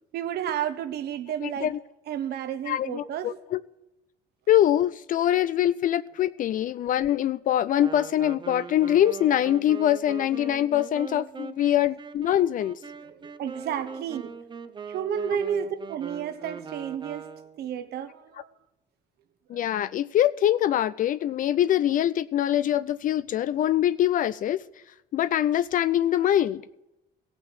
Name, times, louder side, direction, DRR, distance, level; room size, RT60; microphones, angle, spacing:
voice 1, 0.1-1.7 2.1-3.3 13.1-14.3 14.9-17.3 17.6-18.5 19.5-19.7, right 9 dB, 70° right, 1.3 m, -31 dB
voice 2, 1.4-1.8 2.7-3.6 4.5-12.8 19.5-24.6 25.1-26.6, left 11 dB, 50° left, 0.4 m, -24 dB
Wind instrument woodwind instrument, 7.8-17.7, right 5 dB, 25° right, 0.7 m, -41 dB
15.5 x 6.1 x 9.0 m
cardioid pair, 110°, 17 cm